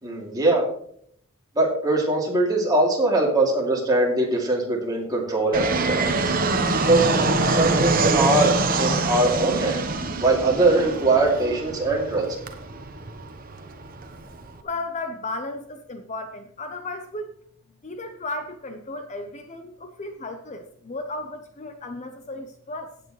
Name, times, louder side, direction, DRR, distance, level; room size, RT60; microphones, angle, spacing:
voice 1, 0.0-0.6 1.6-6.3 6.9-7.1 7.4-9.8 10.2-12.3, right 2 dB, 20° right, -2 dB, 2.8 m, -22 dB
Fixed-wing aircraft airplane, 5.5-14.6, right 3 dB, 40° right, 1.1 m, -25 dB
voice 2, 14.6-17.4 17.8-22.9, left 2 dB, 35° left, 7 dB, 0.8 m, -34 dB
15.5 x 8.8 x 3.2 m, 0.67 s
head